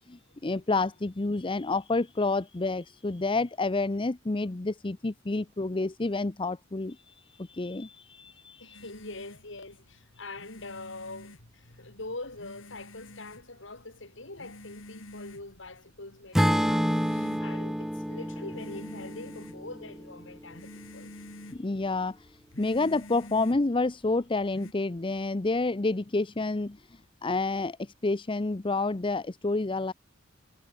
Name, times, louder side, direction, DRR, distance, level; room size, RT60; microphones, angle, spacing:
voice 1, 0.1-8.8 21.5-22.3 22.6-26.8 27.2-29.9, left 3 dB, 25° left, 0.7 m, -29 dB
voice 2, 8.6-21.1, left 2 dB, 70° left, 6.1 m, -44 dB
sound 1, 8.7-24.7, left 1 dB, 85° left, 4.0 m, -49 dB
Acoustic guitar / Strum, 16.3-20.6, equal, ahead, 1.5 m, -29 dB
head